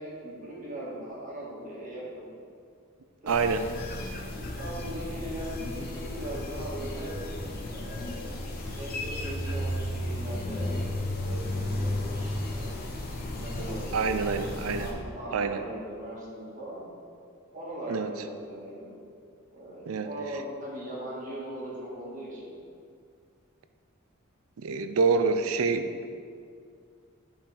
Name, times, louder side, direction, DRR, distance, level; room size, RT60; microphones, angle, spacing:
voice 1, 0.0-2.3 3.2-7.1 7.6-8.3 8.8-12.8 13.2-14.0 14.8-16.9 17.5-18.9 19.5-22.6, right 1 dB, 40° right, -6 dB, 1.8 m, -40 dB
sound 1, 3.3-14.9, left 1 dB, 45° left, 0.8 m, -34 dB
voice 2, 3.3-3.7 13.9-14.9 15.3-15.6 17.9-18.1 19.9-20.1 24.6-26.1, right 4 dB, 85° right, 9 dB, 0.5 m, -26 dB
8.6 x 5.5 x 3.4 m, 2.3 s
head